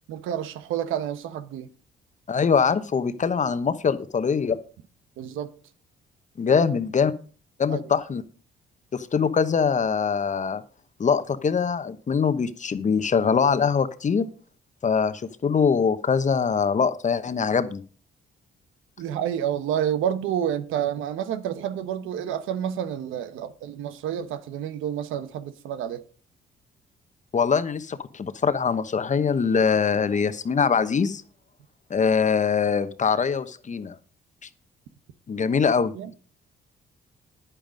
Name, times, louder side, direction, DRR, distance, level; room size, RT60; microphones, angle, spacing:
voice 1, 0.1-1.7 5.2-5.5 7.7-7.8 19.0-26.0 35.9-36.1, right 9 dB, 90° right, 1.0 m, -29 dB
voice 2, 2.3-4.6 6.4-7.1 7.6-8.2 8.9-10.6 11.0-14.3 14.8-17.8 27.3-31.2 31.9-34.0 35.3-35.9, left 6 dB, 40° left, 1.1 m, -23 dB
10.0 x 9.2 x 5.2 m
cardioid pair, 90°, 20 cm